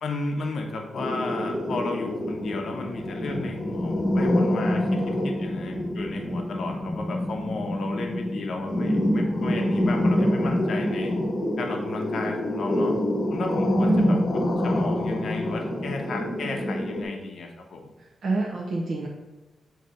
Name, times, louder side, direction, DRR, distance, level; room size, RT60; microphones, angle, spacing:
voice 1, 0.0-11.1 11.6-13.0 13.3-14.2 14.6-17.9, left 3 dB, 60° left, 2 dB, 0.7 m, -33 dB
sound 1, 0.9-17.0, left 1 dB, 45° left, 1.2 m, -26 dB
voice 2, 13.7-14.2 18.0-19.1, right 2 dB, 50° right, -2 dB, 0.7 m, -26 dB
6.8 x 2.7 x 5.0 m, 1.1 s
wide cardioid pair, 170°, 0 cm